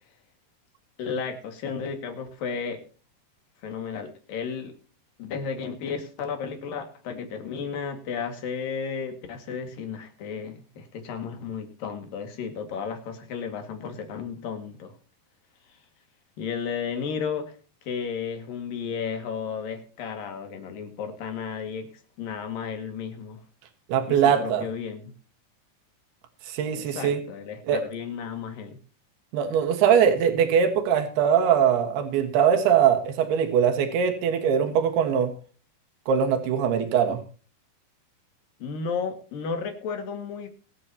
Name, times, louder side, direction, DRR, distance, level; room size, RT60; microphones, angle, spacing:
voice 1, 1.0-2.8 3.6-4.8 5.2-14.9 16.4-17.6 17.9-21.9 22.2-23.4 24.1-25.1 26.8-28.8 38.6-40.5, left 6 dB, 65° left, 5 dB, 3.6 m, -33 dB
voice 2, 23.9-24.6 26.5-27.2 27.7-27.8 29.3-35.3 36.1-37.2, right 8 dB, 85° right, 5 dB, 3.6 m, -22 dB
25.0 x 9.0 x 2.9 m, 0.37 s
omnidirectional pair, 4.6 m